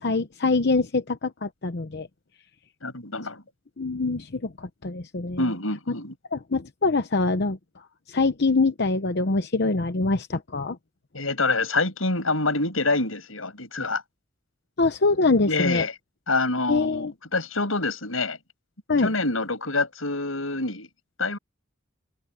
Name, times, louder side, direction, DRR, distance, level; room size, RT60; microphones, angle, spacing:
voice 1, 0.0-2.1 3.8-5.4 6.3-7.6 8.1-10.8 14.8-15.8 16.7-17.1 18.9-19.1, left 3 dB, 55° left, 0.9 m, -24 dB
voice 2, 2.8-3.4 5.4-6.1 11.1-14.0 15.5-15.9 16.3-18.4 19.0-20.9 21.2-21.4, left 3 dB, 90° left, 6.7 m, -26 dB
head